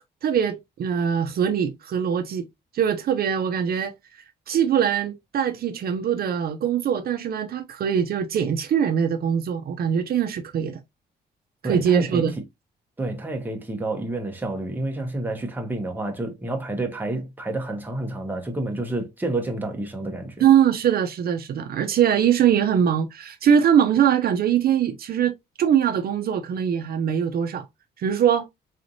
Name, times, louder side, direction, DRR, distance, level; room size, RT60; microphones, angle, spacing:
voice 1, 0.2-2.5 2.7-3.9 4.5-10.8 11.6-12.3 20.4-27.7 28.0-28.5, right 8 dB, 60° right, 0.5 m, -22 dB
voice 2, 11.6-12.2 13.0-20.5, right 2 dB, 10° right, 1.0 m, -29 dB
4.0 x 3.2 x 2.6 m
cardioid pair, 140°, 18 cm